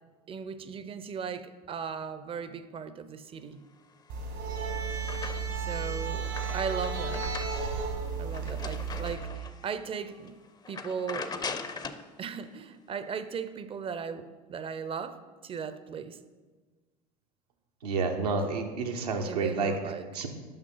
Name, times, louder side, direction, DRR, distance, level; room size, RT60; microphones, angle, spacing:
voice 1, 0.3-3.6 5.6-7.3 8.2-10.3 10.7-11.4 12.2-16.2 19.2-20.1, right 6 dB, 30° right, 12 dB, 0.5 m, -37 dB
sound 1, 4.1-5.7 6.1-9.7 10.1-10.3 10.6-12.1, left 5 dB, 20° left, 0.5 m, -40 dB
sound 2, 4.1-9.1, right 5 dB, 65° right, 1.3 m, -33 dB
voice 2, 17.8-19.7 20.1-20.3, right 4 dB, 85° right, 3 dB, 0.9 m, -29 dB
5.9 x 5.6 x 5.5 m, 1.4 s
hypercardioid pair, 85°, 20 cm